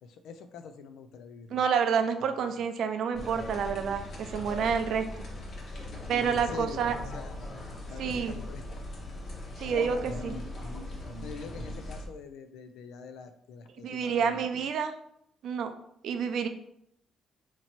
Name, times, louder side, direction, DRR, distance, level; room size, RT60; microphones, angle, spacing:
voice 1, 0.0-1.7 6.2-6.9 7.1-7.3 7.9-8.6 9.6-10.4 11.2-14.4, left 5 dB, 85° left, 8 dB, 0.4 m, -44 dB
voice 2, 1.5-5.0 6.1-7.0 8.0-8.3 9.6-10.3 13.8-14.9 15.4-15.7 16.0-16.5, right 6 dB, 75° right, 8 dB, 0.4 m, -28 dB
sound 1, 3.1-12.1, left 1 dB, 55° left, 1.1 m, -39 dB
2.9 x 2.8 x 4.3 m, 0.74 s
cardioid pair, 90°, 0 cm